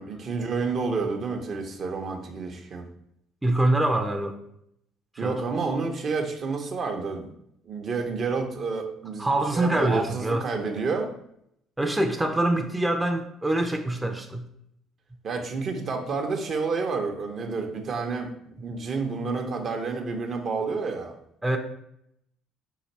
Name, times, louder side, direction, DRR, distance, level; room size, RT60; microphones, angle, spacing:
voice 1, 0.0-2.9 5.2-7.3 7.6-11.1 15.2-21.1, right 4 dB, 50° right, 4 dB, 0.8 m, -29 dB
voice 2, 3.4-4.4 5.2-5.4 9.2-10.4 11.8-14.4 21.4-21.6, right 1 dB, 10° right, 3 dB, 0.5 m, -24 dB
4.8 x 2.6 x 4.2 m, 0.75 s
hypercardioid pair, 65°, 0 cm